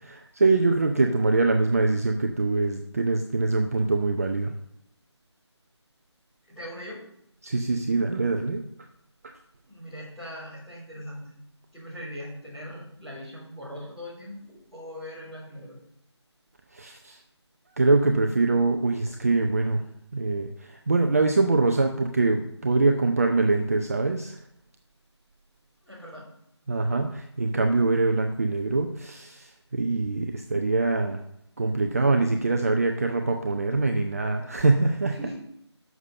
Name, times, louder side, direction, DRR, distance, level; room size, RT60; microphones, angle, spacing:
voice 1, 0.1-4.5 7.4-8.6 9.2-9.3 16.7-17.2 17.8-19.8 20.1-24.4 26.7-31.2 31.6-35.2, right 3 dB, 30° right, 5 dB, 0.6 m, -24 dB
voice 2, 6.5-7.0 9.6-11.3 11.7-15.8 25.8-26.3 35.1-35.4, equal, ahead, -14 dB, 3.5 m, -40 dB
11.0 x 6.9 x 5.4 m, 0.77 s
figure-of-eight pair, 165°, 15 cm